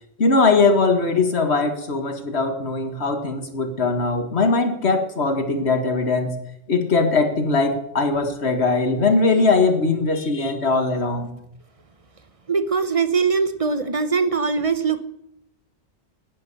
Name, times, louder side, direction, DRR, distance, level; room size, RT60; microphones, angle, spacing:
voice 1, 0.2-6.3 6.7-11.3, left 3 dB, 70° left, 7 dB, 2.0 m, -20 dB
voice 2, 12.5-15.0, right 5 dB, 35° right, 11 dB, 1.0 m, -21 dB
11.0 x 9.9 x 9.7 m, 0.79 s
omnidirectional pair, 1.1 m